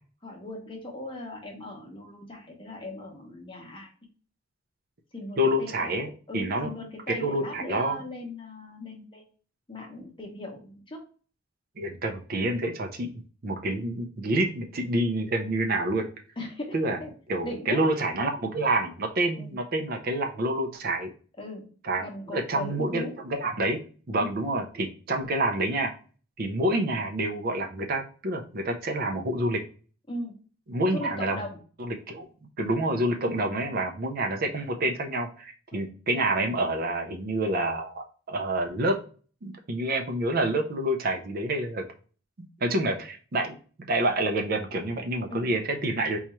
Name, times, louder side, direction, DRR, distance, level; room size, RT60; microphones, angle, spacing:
voice 1, 0.2-3.9 5.1-5.9 6.3-9.2 9.7-11.1 16.4-17.1 17.4-17.9 19.4-19.5 21.4-21.6 22.0-23.1 24.2-24.4 30.1-30.3 30.9-31.6 35.7-35.9 45.3-45.5, left 2 dB, 25° left, 1 dB, 0.8 m, -38 dB
voice 2, 5.4-6.7 7.1-8.0 11.8-16.1 16.7-17.0 17.3-21.1 21.8-23.8 24.1-25.9 26.4-29.6 30.7-31.4 31.8-32.3 32.6-38.9 39.4-41.8 42.4-46.2, right 1 dB, 45° right, 5 dB, 0.5 m, -28 dB
4.2 x 2.3 x 2.9 m, 0.40 s
head